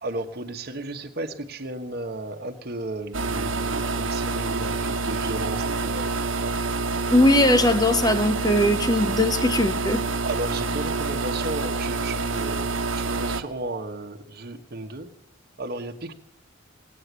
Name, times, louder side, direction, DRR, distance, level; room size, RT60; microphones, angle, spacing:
voice 1, 0.0-6.5 10.2-15.1 15.6-16.1, right 2 dB, 55° right, 5 dB, 1.3 m, -34 dB
sound 1, 3.1-13.4, right 3 dB, 80° right, 1.2 m, -27 dB
voice 2, 7.1-10.0, left 1 dB, 20° left, 9 dB, 1.1 m, -20 dB
19.5 x 8.7 x 8.2 m, 0.70 s
head